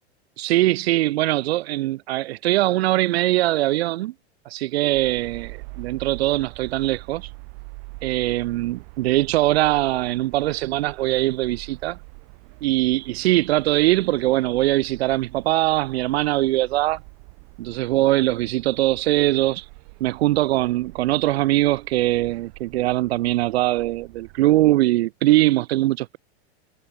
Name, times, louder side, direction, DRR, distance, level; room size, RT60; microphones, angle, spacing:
voice 1, 0.4-4.1 4.4-7.3 8.0-12.0 12.6-17.0 17.6-19.6 20.0-26.2, right 17 dB, 70° right, 1.5 m, -21 dB
sound 1, 4.9-24.8, right 40 dB or more, 55° right, 4.6 m, -44 dB
supercardioid pair, 135°, 32 cm